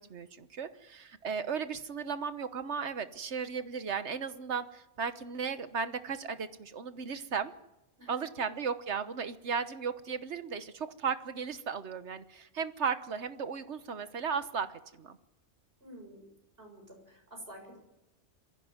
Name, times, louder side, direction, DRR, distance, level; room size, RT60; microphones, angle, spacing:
voice 1, 0.0-7.5 8.1-15.2, right 6 dB, 80° right, 12 dB, 1.5 m, -35 dB
voice 2, 15.8-16.3 16.6-17.8, right 1 dB, 55° right, 2 dB, 7.2 m, -49 dB
22.5 x 15.5 x 9.7 m, 0.95 s
omnidirectional pair, 1.2 m